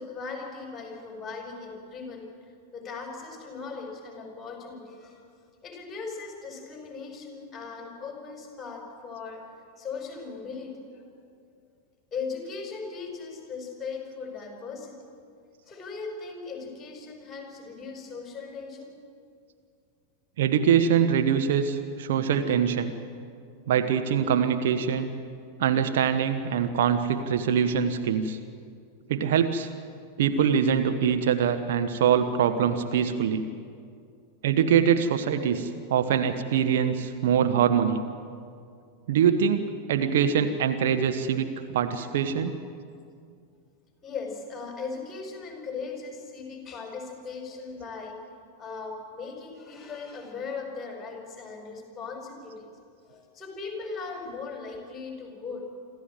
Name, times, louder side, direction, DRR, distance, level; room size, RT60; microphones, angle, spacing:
voice 1, 0.0-2.3 2.7-5.2 5.6-11.0 12.1-15.0 15.7-19.0 44.0-48.2 48.6-52.7 53.1-55.7, left 4 dB, 20° left, 2 dB, 5.6 m, -38 dB
voice 2, 20.4-22.9 23.7-25.1 25.6-28.4 29.1-29.7 30.2-33.5 34.4-38.0 39.1-41.5 41.7-42.6, right 8 dB, 55° right, 7 dB, 1.2 m, -24 dB
27.0 x 14.0 x 9.1 m, 2.3 s
figure-of-eight pair, 90°, 0 cm